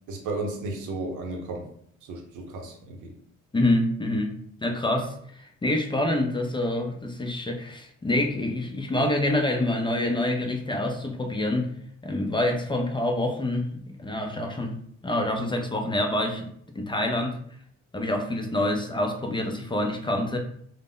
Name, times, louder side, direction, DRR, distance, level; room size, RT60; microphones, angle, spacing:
voice 1, 0.1-1.7 2.1-3.2, right 2 dB, 90° right, 2 dB, 0.7 m, -33 dB
voice 2, 3.5-11.7 12.0-14.8 15.0-16.5 16.8-17.4 17.9-20.4, left 1 dB, 15° left, 3 dB, 0.4 m, -26 dB
2.1 x 2.0 x 3.7 m, 0.64 s
cardioid pair, 90°, 30 cm